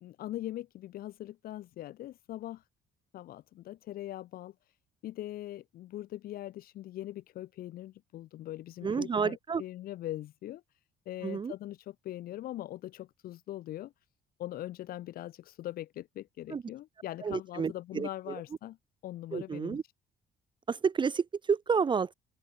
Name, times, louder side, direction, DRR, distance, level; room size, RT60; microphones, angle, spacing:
voice 1, 0.0-2.6 3.1-4.5 5.0-10.6 11.1-13.9 14.4-18.8 19.0-19.8, left 14 dB, 60° left, 0.6 m, -41 dB
voice 2, 8.8-9.6 11.2-11.5 16.5-16.6 17.2-18.1 19.3-19.8 20.7-22.1, right 6 dB, 30° right, 0.8 m, -30 dB
open air
cardioid pair, 110°, 17 cm